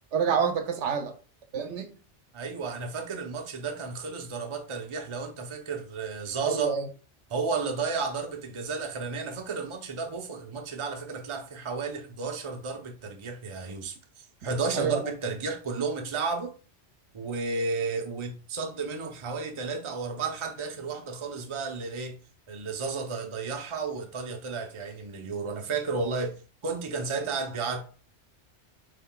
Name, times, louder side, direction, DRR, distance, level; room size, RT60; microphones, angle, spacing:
voice 1, 0.1-1.1 1.5-1.9 6.4-6.9 14.7-15.0, right 6 dB, 75° right, 0.9 m, -27 dB
voice 2, 2.3-6.7 7.3-16.5 17.1-22.2 22.5-26.4 26.6-27.8, right 4 dB, 30° right, 0.6 m, -32 dB
5.5 x 3.3 x 2.3 m
omnidirectional pair, 1.2 m